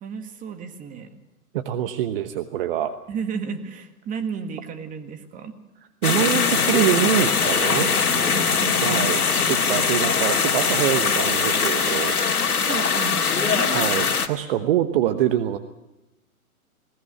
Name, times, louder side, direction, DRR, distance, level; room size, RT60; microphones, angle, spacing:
voice 1, 0.0-1.1 3.1-5.5 8.3-9.2 11.5-11.6 12.6-14.0, right 5 dB, 20° right, 7 dB, 1.7 m, -33 dB
voice 2, 1.5-2.9 6.0-7.9 8.8-9.2 9.5-12.2 13.7-15.6, right 11 dB, 40° right, 9 dB, 1.1 m, -24 dB
sound 1, 6.0-14.3, left 5 dB, 80° left, 2.1 m, -21 dB
20.5 x 19.0 x 6.8 m, 0.99 s
hypercardioid pair, 125°, 44 cm